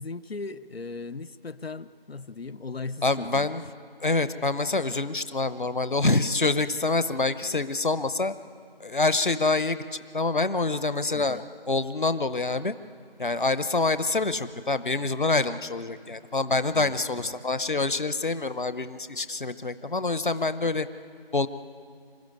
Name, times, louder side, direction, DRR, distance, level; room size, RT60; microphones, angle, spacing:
voice 1, 0.0-3.5 11.1-11.4 16.7-17.3, left 3 dB, 85° left, 14 dB, 0.8 m, -38 dB
voice 2, 3.0-3.6 4.0-8.3 8.8-12.7 13.2-20.9 21.3-21.5, left 3 dB, 55° left, 13 dB, 0.8 m, -26 dB
26.0 x 14.5 x 9.5 m, 2.3 s
figure-of-eight pair, 175°, 30 cm